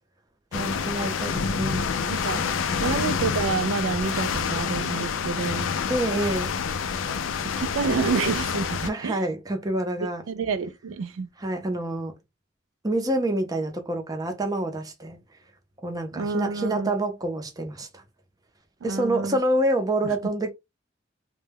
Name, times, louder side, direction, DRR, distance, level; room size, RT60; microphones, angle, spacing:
sound 1, 0.5-8.9, left 6 dB, 75° left, 0.4 m, -27 dB
voice 1, 0.5-1.9 2.3-2.5 2.8-2.9 5.9-6.5 8.8-10.2 11.4-12.2 12.8-15.2 15.8-18.0 18.8-20.5, right 1 dB, 20° right, 0.5 m, -27 dB
voice 2, 2.1-2.5 2.8-5.7 7.3-9.2 10.3-11.3 16.1-16.9 18.8-19.4 20.0-20.1, right 5 dB, 80° right, 0.3 m, -29 dB
2.2 x 2.1 x 3.3 m
head